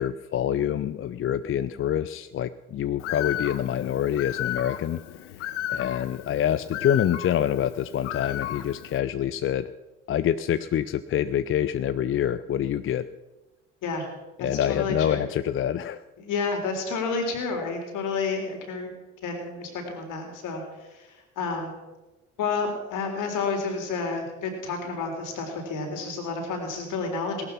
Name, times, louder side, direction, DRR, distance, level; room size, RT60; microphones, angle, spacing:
voice 1, 0.0-5.0 5.7-9.7 10.1-13.1 14.4-16.0, left 10 dB, 35° left, 14 dB, 0.5 m, -26 dB
Bird, 3.0-9.0, left 11 dB, 80° left, 0.8 m, -34 dB
voice 2, 14.4-15.3 16.2-18.9 19.2-21.8 22.4-27.5, left 4 dB, 60° left, 3 dB, 3.9 m, -30 dB
18.0 x 12.0 x 5.8 m, 1.1 s
figure-of-eight pair, 50°, 35 cm